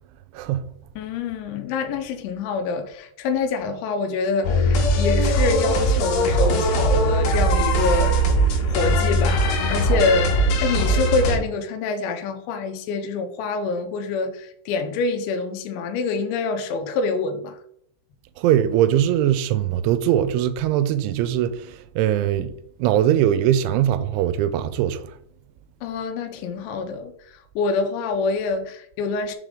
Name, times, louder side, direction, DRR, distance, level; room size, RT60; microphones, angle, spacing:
voice 1, 1.0-8.2 8.7-17.6 25.8-29.4, left 4 dB, 85° left, 3.0 m, -26 dB
sound 1, 4.4-11.4, right 1 dB, 70° left, 3.1 m, -20 dB
voice 2, 18.4-22.5 22.8-25.0, right 11 dB, 85° right, 3.0 m, -21 dB
7.1 x 5.0 x 3.7 m
omnidirectional pair, 5.3 m